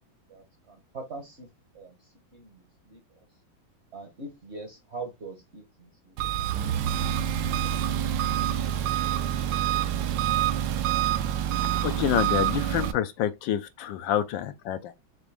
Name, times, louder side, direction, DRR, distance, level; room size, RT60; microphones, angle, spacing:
voice 1, 0.3-1.5 1.7-2.0 2.3-3.2 3.9-6.3, right 3 dB, 45° right, 0.9 m, -42 dB
Engine, 6.2-12.9, right 10 dB, 75° right, 1.2 m, -26 dB
voice 2, 11.8-15.0, left 11 dB, 75° left, 1.2 m, -27 dB
6.1 x 2.5 x 3.3 m
omnidirectional pair, 2.2 m